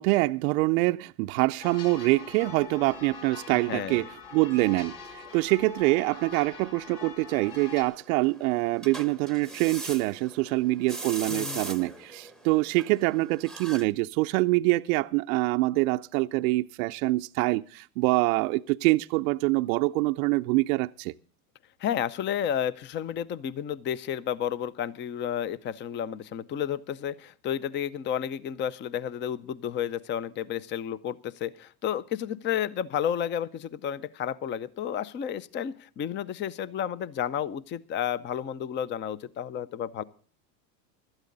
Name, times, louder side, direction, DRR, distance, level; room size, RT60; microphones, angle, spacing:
voice 1, 0.0-21.1, right 21 dB, 60° right, 0.5 m, -25 dB
sound 1, 1.6-7.8, left 5 dB, 55° left, 3.3 m, -43 dB
voice 2, 3.7-4.0 11.3-11.6 21.8-40.0, left 9 dB, 25° left, 0.5 m, -31 dB
sound 2, 7.3-13.8, right 2 dB, ahead, 0.9 m, -41 dB
17.0 x 12.5 x 3.9 m
hypercardioid pair, 105°, 50 cm